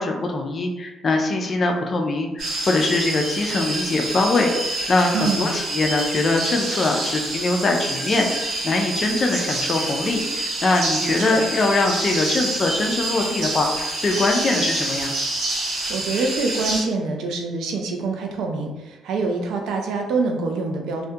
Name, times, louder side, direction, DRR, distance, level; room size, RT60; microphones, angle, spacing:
voice 1, 0.0-15.1, left 2 dB, 40° left, 2 dB, 0.4 m, -22 dB
sound 1, 2.4-16.8, right 2 dB, 65° right, 0.8 m, -27 dB
voice 2, 5.1-5.5 11.0-11.4 15.9-21.0, right 3 dB, 80° right, 3 dB, 0.4 m, -25 dB
2.2 x 2.1 x 2.7 m, 1.1 s
cardioid pair, 90°, 0 cm